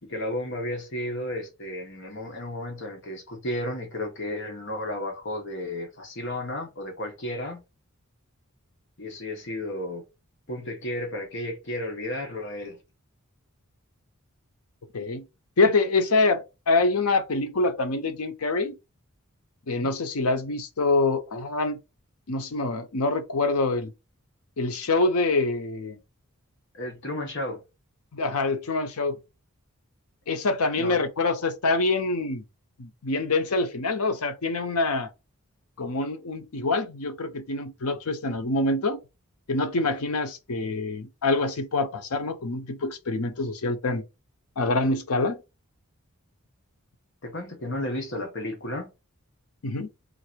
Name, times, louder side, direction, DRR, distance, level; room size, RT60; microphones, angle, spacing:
voice 1, 0.0-7.6 9.0-10.0 10.5-12.8 19.8-19.9 26.7-27.6 30.8-31.0 47.2-48.9, left 1 dB, 55° left, 1.2 m, -33 dB
voice 2, 14.9-15.2 15.6-18.8 19.7-21.8 22.3-23.9 24.6-26.0 28.1-29.2 30.3-32.4 32.8-35.1 35.8-39.0 39.5-44.0 44.6-45.4 49.6-49.9, left 3 dB, 90° left, 0.8 m, -25 dB
3.8 x 2.6 x 4.5 m
head